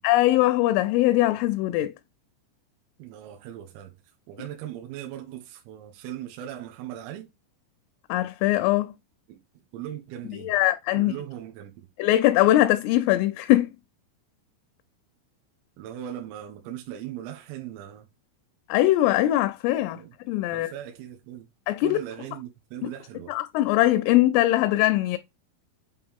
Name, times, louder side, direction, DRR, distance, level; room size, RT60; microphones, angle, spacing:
voice 1, 0.0-1.9 8.1-8.9 10.4-11.1 12.0-13.7 18.7-20.0 20.3-20.7 21.7-22.0 23.3-25.2, left 15 dB, 85° left, 3.0 m, -21 dB
voice 2, 3.0-7.3 9.3-10.5 11.0-11.9 15.8-18.1 19.9-20.2 20.5-21.5 21.8-23.3, right 11 dB, 80° right, 3.6 m, -39 dB
8.8 x 3.1 x 3.6 m
omnidirectional pair, 6.0 m